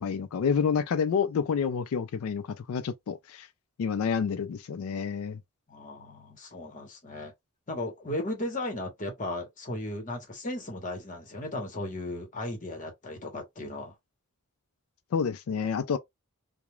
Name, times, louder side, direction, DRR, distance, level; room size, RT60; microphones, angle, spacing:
voice 1, 0.0-3.5 3.8-5.4 15.1-16.0, left 6 dB, 70° left, 0.3 m, -28 dB
voice 2, 5.7-7.3 7.7-13.9, left 1 dB, 35° left, 1.0 m, -36 dB
2.3 x 2.1 x 2.9 m
head